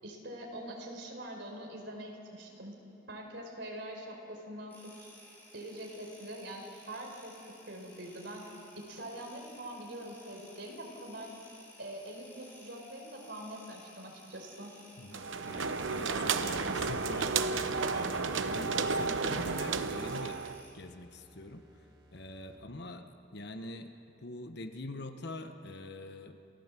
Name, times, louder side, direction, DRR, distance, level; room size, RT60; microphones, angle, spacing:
voice 1, 0.0-2.7 3.1-5.1 5.5-8.5 8.8-11.3 11.8-14.7, right 1 dB, 70° right, 1 dB, 4.7 m, -44 dB
sound 1, 4.7-20.7, left 1 dB, 10° left, 6.0 m, -56 dB
voice 2, 15.0-21.6 22.1-23.1 23.3-23.9 24.2-26.4, left 2 dB, 60° left, 7 dB, 1.2 m, -44 dB
sound 2, 15.1-20.6, right 4 dB, 85° right, 0.9 m, -32 dB
sound 3, 16.9-22.8, equal, 20° right, 2.7 m, -61 dB
29.0 x 16.0 x 7.6 m, 2.8 s
head